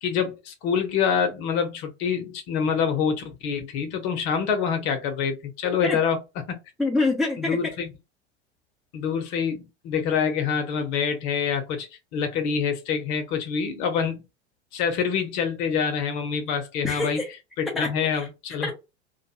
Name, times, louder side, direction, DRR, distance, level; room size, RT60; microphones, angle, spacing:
voice 1, 0.0-6.2 7.4-7.9 8.9-11.9 12.1-14.2 14.7-17.2 17.6-18.7, left 6 dB, 45° left, 0.8 m, -26 dB
voice 2, 6.8-7.7 16.8-17.3 17.8-18.3 18.6-18.7, left 2 dB, ahead, 0.4 m, -26 dB
2.5 x 2.2 x 2.7 m
figure-of-eight pair, 80°, 34 cm